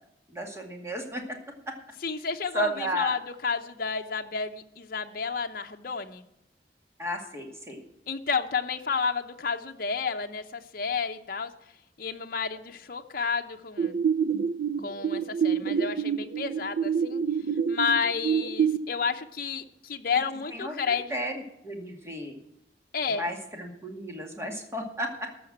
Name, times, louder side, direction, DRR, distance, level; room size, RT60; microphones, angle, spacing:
voice 1, 0.3-1.4 1.7-1.8 2.5-3.2 7.0-7.8 20.5-22.4 23.1-25.3, equal, 15° right, 2 dB, 2.2 m, -34 dB
voice 2, 2.0-6.2 8.1-11.5 12.0-13.9 14.8-17.2 17.7-21.2 22.9-23.2, left 5 dB, 55° left, 5 dB, 0.8 m, -31 dB
sound 1, 13.8-18.8, right 7 dB, 65° right, 0.5 m, -27 dB
14.0 x 5.9 x 8.7 m, 0.84 s
head